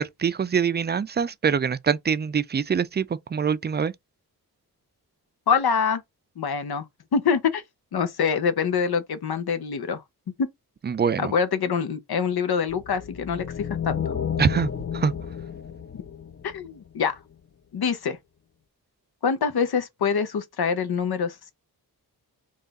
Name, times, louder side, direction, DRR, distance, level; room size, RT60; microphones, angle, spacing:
voice 1, 0.0-3.9 10.8-11.3 14.4-15.1, right 6 dB, 30° right, 0.4 m, -24 dB
voice 2, 5.5-6.0 6.4-6.8 7.1-7.6 7.9-10.0 11.2-14.0 16.4-17.1 17.7-18.2 19.2-21.5, left 6 dB, 80° left, 0.8 m, -25 dB
sound 1, 12.7-17.1, left 8 dB, 40° left, 0.7 m, -32 dB
3.5 x 2.4 x 3.9 m
cardioid pair, 60°, 37 cm